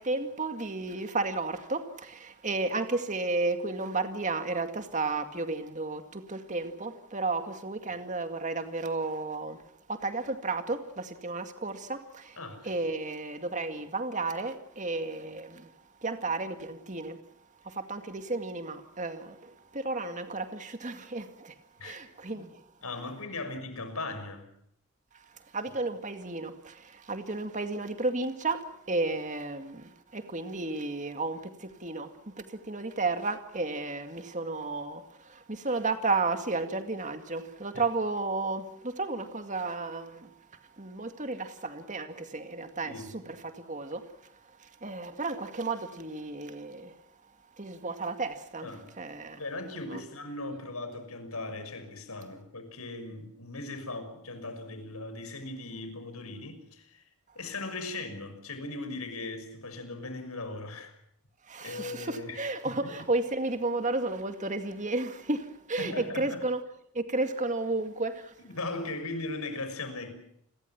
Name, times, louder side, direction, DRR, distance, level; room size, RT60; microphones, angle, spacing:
voice 1, 0.0-12.4 12.6-17.2 17.6-22.6 25.1-47.0 47.6-48.7 49.0-49.4 49.9-50.0 61.4-66.6 66.9-68.4, right 3 dB, 35° right, 2.2 m, -33 dB
voice 2, 12.4-12.7 21.8-22.0 22.3-22.4 22.8-24.5 37.7-37.8 42.8-43.0 48.6-48.9 49.3-57.0 57.3-60.9 61.6-62.9 65.8-66.4 68.4-70.1, left 2 dB, 85° left, 6.1 m, -38 dB
29.5 x 22.0 x 5.9 m
head